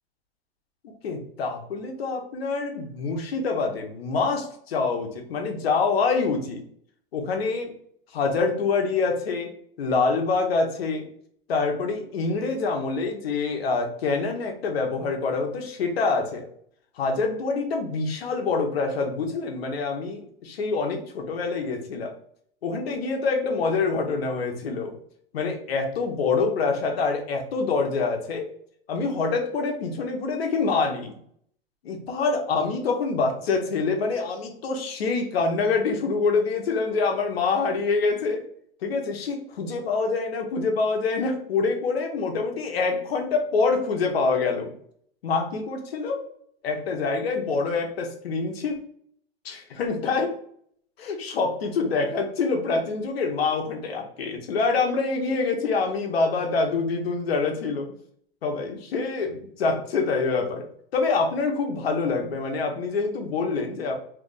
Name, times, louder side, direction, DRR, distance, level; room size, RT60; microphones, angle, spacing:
voice 1, 1.0-6.6 7.1-7.7 8.1-9.5 9.8-11.1 11.5-16.5 17.0-22.1 22.6-25.0 25.3-28.5 28.9-31.1 31.8-38.4 38.8-44.7 45.2-46.2 46.6-48.8 49.4-50.3 51.0-57.9 58.4-60.6 60.9-64.0, left 4 dB, 80° left, 3 dB, 1.0 m, -26 dB
2.9 x 2.5 x 3.8 m, 0.64 s
hypercardioid pair, 125°, 30 cm